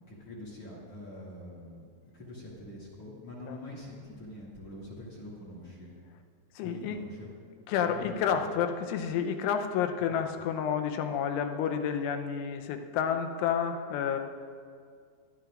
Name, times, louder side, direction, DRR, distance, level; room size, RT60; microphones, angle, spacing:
voice 1, 0.1-1.9 2.1-5.9 6.6-7.3 7.8-8.5 10.1-10.2, left 1 dB, 40° left, -6 dB, 2.4 m, -45 dB
voice 2, 6.5-7.0 7.7-14.2, left 8 dB, 85° left, 6 dB, 3.2 m, -30 dB
23.5 x 12.0 x 2.5 m, 2.1 s
omnidirectional pair, 5.4 m